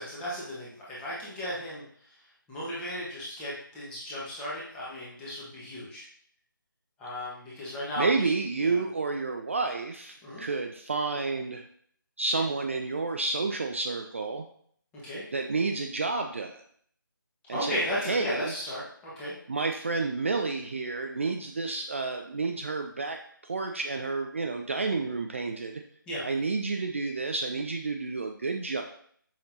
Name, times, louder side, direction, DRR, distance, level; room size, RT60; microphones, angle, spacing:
voice 1, 0.0-1.8 2.5-6.1 7.0-8.3 8.6-8.8 10.2-10.4 14.9-15.2 17.5-19.3 26.1-26.2, equal, 10° left, -7 dB, 1.5 m, -35 dB
voice 2, 8.0-11.6 12.2-14.4 15.3-16.6 17.5-18.5 19.5-23.2 23.4-25.8 26.2-28.8, right 3 dB, 35° right, 4 dB, 0.4 m, -30 dB
7.3 x 5.8 x 2.8 m, 0.62 s
figure-of-eight pair, 155°, 12 cm